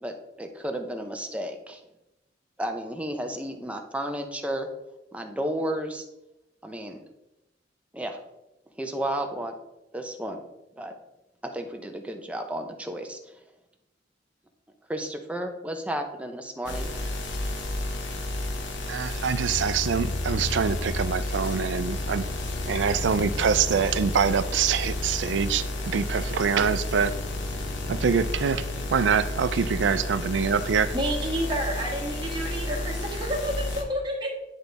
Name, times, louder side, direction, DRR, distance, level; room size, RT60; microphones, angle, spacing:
voice 1, 0.0-1.8 2.6-4.7 5.1-6.0 6.6-7.0 7.9-8.2 8.8-9.5 9.9-10.4 10.8-10.9 11.4-13.2 14.9-17.0, right 1 dB, 5° right, 0.7 m, -32 dB
sound 1, 16.7-33.8, left 1 dB, 80° left, 1.1 m, -32 dB
voice 2, 18.9-22.2 22.6-27.2 27.9-30.9, right 6 dB, 75° right, 0.4 m, -25 dB
sound 2, 19.5-21.3 21.8-25.8 26.5-29.7, left 3 dB, 50° left, 0.6 m, -38 dB
voice 3, 30.9-34.4, equal, 25° right, 1.5 m, -30 dB
10.0 x 4.0 x 3.4 m
head